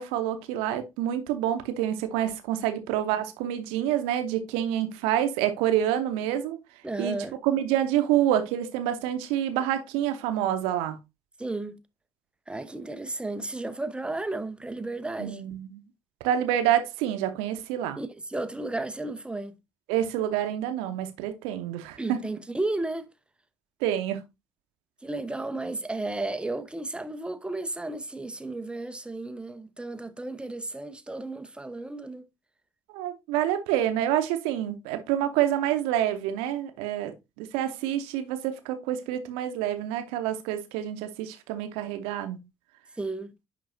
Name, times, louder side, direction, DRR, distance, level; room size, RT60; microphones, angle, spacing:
voice 1, 0.0-6.6 7.0-7.2 7.4-11.0 15.2-15.8 16.2-18.0 19.9-22.2 23.8-24.2 32.9-42.4, right 11 dB, 65° right, 0.9 m, -27 dB
voice 2, 6.8-7.4 11.4-11.8 12.5-15.4 18.0-19.5 22.0-23.1 25.0-32.2 43.0-43.3, right 2 dB, 10° right, 0.7 m, -33 dB
10.5 x 3.9 x 2.7 m
figure-of-eight pair, 45°, 10 cm